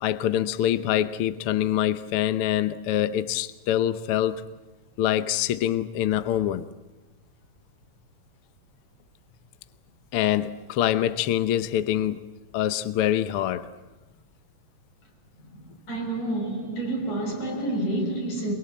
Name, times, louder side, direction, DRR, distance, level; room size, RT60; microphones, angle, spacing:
voice 1, 0.0-4.4 5.0-6.6 10.1-12.2 12.5-13.7, left 11 dB, 65° left, 1.5 m, -25 dB
voice 2, 15.9-18.5, right 1 dB, 80° left, 8.0 m, -28 dB
24.0 x 23.0 x 8.6 m
omnidirectional pair, 3.4 m